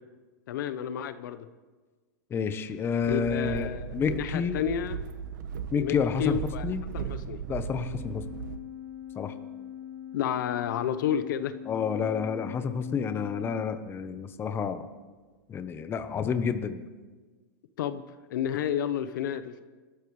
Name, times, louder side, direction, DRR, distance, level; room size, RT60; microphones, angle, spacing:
voice 1, 0.5-1.5 3.1-5.0 5.7-6.6 6.9-7.4 10.1-11.5 17.8-18.0 18.3-19.5, left 9 dB, 75° left, 12 dB, 0.9 m, -31 dB
voice 2, 2.3-4.6 5.7-6.4 6.6-6.8 7.5-8.2 9.1-9.3 11.7-14.9 15.5-16.8, left 6 dB, 20° left, 10 dB, 0.9 m, -29 dB
sound 1, 3.0-8.6, right 7 dB, 65° right, 1.1 m, -37 dB
Organ, 7.7-14.2, left 10 dB, 15° right, 6.5 m, -43 dB
26.5 x 13.0 x 3.3 m, 1.3 s
supercardioid pair, 135°, 11 cm